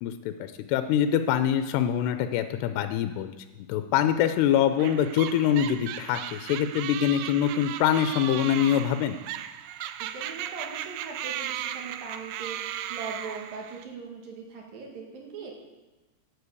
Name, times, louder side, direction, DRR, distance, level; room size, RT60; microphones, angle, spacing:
voice 1, 0.0-3.3 3.7-9.2, left 9 dB, 85° left, 9 dB, 2.7 m, -24 dB
sound 1, 4.8-13.8, right 11 dB, 90° right, 2.0 m, -36 dB
voice 2, 10.0-15.5, right 4 dB, 60° right, 0 dB, 3.6 m, -40 dB
11.5 x 8.3 x 8.2 m, 1.1 s
omnidirectional pair, 4.9 m